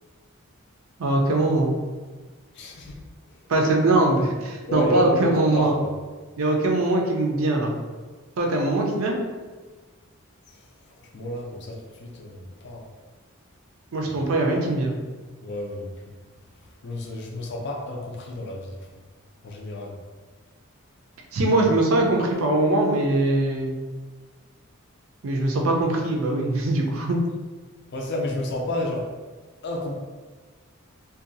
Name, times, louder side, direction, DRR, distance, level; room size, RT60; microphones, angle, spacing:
voice 1, 1.0-1.7 3.5-5.7 6.4-7.7 8.4-9.2 13.9-14.9 21.3-23.7 25.2-27.2, right 2 dB, 75° right, 1 dB, 0.5 m, -22 dB
voice 2, 2.5-3.0 3.3-3.4 4.7-6.0 10.5-12.9 14.0-14.1 15.4-16.1 16.6-19.0 19.4-20.0 27.9-29.1 29.6-29.9, left 1 dB, 55° left, 0 dB, 0.4 m, -31 dB
2.7 x 2.2 x 2.6 m, 1.4 s
head